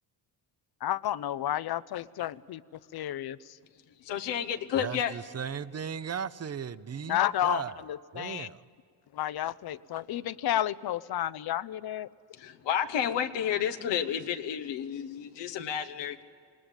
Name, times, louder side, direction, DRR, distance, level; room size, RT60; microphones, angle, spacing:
voice 1, 0.8-2.6 2.9-3.6 7.1-8.5 9.1-12.1, left 12 dB, 65° left, 16 dB, 0.7 m, -31 dB
voice 2, 4.0-5.1 12.3-16.2, left 9 dB, 90° left, 7 dB, 1.1 m, -31 dB
voice 3, 4.7-7.8 8.1-8.7, right 7 dB, 35° right, 15 dB, 0.7 m, -37 dB
20.0 x 19.5 x 9.0 m, 2.3 s
cardioid pair, 75°, 41 cm